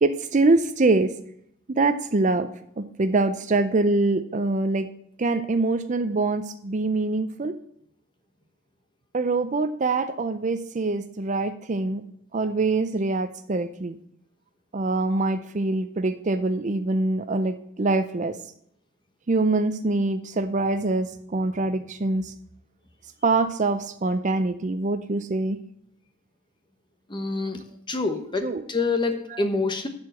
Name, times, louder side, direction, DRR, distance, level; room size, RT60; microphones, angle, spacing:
voice 1, 0.0-1.1 1.7-2.5 2.8-4.9 5.2-7.5 9.1-12.0 12.3-14.0 14.7-18.3 19.3-22.3 23.2-25.6 28.4-28.6 29.3-29.4, right 3 dB, 35° right, 10 dB, 0.5 m, -24 dB
voice 2, 27.1-27.6 27.9-29.9, left 3 dB, 20° left, 6 dB, 1.1 m, -26 dB
11.0 x 4.8 x 7.5 m, 0.72 s
head